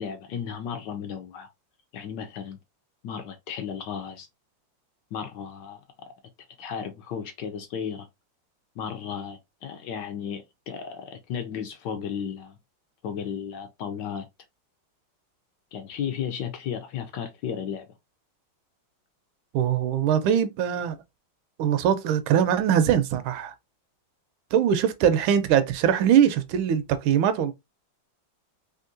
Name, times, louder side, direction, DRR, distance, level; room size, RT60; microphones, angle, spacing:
voice 1, 0.0-1.5 1.9-2.6 3.0-4.3 5.1-5.8 6.6-8.1 8.8-12.6 13.0-14.3 15.7-17.9, left 7 dB, 70° left, 1.1 m, -34 dB
voice 2, 19.5-21.0 21.6-23.5 24.5-27.5, right 9 dB, 85° right, 1.4 m, -22 dB
3.6 x 2.5 x 2.5 m
omnidirectional pair, 2.2 m